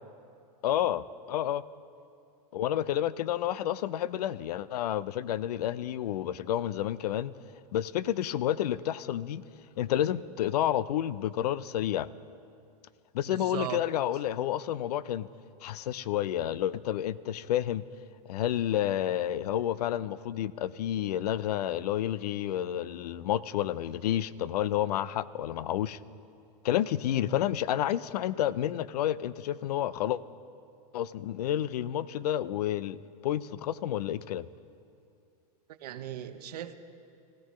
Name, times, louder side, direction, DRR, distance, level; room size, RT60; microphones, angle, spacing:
voice 1, 0.6-1.6 2.5-7.3 7.7-9.4 9.8-12.1 13.1-15.3 15.6-17.8 18.3-26.0 26.6-30.2 30.9-34.5, left 11 dB, 90° left, 18 dB, 0.4 m, -30 dB
voice 2, 13.3-13.8 35.8-36.7, right 11 dB, 85° right, 10 dB, 0.8 m, -37 dB
18.0 x 14.0 x 3.1 m, 2.5 s
supercardioid pair, 125°, 20 cm